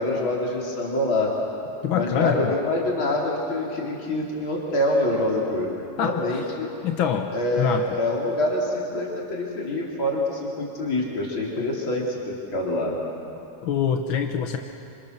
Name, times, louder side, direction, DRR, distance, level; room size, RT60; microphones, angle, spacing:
voice 1, 0.0-1.3 1.9-5.7 6.0-6.7 7.3-13.0, left 1 dB, 40° left, -3 dB, 4.3 m, -25 dB
voice 2, 1.8-2.5 6.0-6.5 6.8-7.9 13.6-14.6, left 8 dB, 60° left, 4 dB, 1.4 m, -25 dB
29.0 x 27.0 x 6.8 m, 2.7 s
omnidirectional pair, 3.4 m